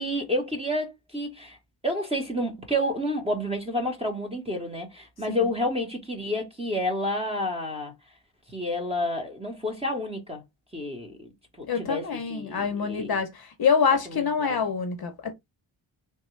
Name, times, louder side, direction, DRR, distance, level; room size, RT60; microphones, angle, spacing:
voice 1, 0.0-1.6 1.8-7.9 8.5-10.4 10.7-11.3 11.6-13.2 14.1-14.6, left 1 dB, 10° right, 0.9 m, -30 dB
voice 2, 11.7-15.3, left 6 dB, 50° left, 0.7 m, -26 dB
3.3 x 2.3 x 3.1 m
wide cardioid pair, 110°, 49 cm